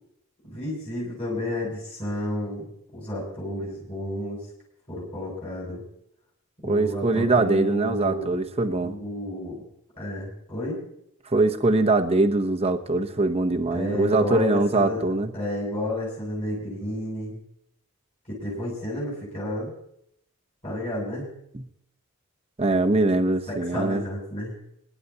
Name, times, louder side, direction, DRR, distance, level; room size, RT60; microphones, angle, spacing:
voice 1, 0.4-2.7 2.9-4.4 4.9-5.8 6.6-8.3 8.8-9.6 10.0-10.8 13.7-15.0 15.3-17.4 18.3-19.7 20.6-21.3 23.5-24.6, left 1 dB, 30° left, -6 dB, 6.5 m, -31 dB
voice 2, 6.6-8.9 11.3-15.3 21.5-21.6 22.6-24.0, right 2 dB, 25° right, 7 dB, 0.9 m, -22 dB
26.5 x 11.0 x 2.8 m, 0.71 s
head